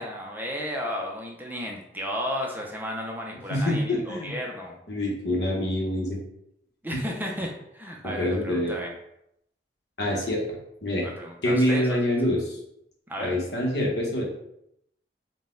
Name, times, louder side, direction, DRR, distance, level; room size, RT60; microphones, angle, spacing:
voice 1, 0.0-4.8 6.8-8.9 11.0-12.0 13.1-13.4, equal, 10° right, 0 dB, 0.4 m, -33 dB
voice 2, 3.5-4.3 4.9-6.2 8.2-8.7 10.0-10.4 10.8-11.1 11.4-12.6 13.2-14.2, left 1 dB, 70° left, -1 dB, 0.9 m, -25 dB
4.0 x 2.2 x 3.7 m, 0.79 s
head